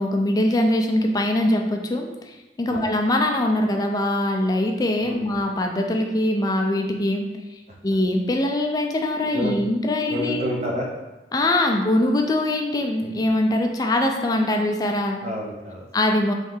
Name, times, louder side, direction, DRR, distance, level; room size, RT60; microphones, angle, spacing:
voice 1, 0.0-7.3 7.5-10.4 11.3-15.2 15.9-16.3, left 1 dB, 20° left, 2 dB, 0.3 m, -22 dB
voice 2, 10.0-10.9 15.2-15.9, equal, 40° right, -1 dB, 0.6 m, -29 dB
3.1 x 2.7 x 3.7 m, 1.1 s
head